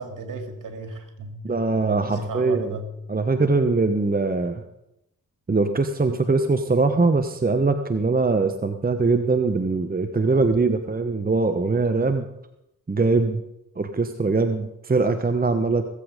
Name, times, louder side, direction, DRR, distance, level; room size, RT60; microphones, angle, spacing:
voice 1, 0.0-1.4 1.8-2.9 10.3-10.5, right 3 dB, 55° right, 5 dB, 3.1 m, -34 dB
voice 2, 1.4-2.8 3.1-4.6 5.5-12.3 12.9-13.4 13.8-15.9, right 3 dB, 25° right, 7 dB, 1.2 m, -22 dB
20.0 x 8.4 x 5.2 m, 0.84 s
hypercardioid pair, 45°, 37 cm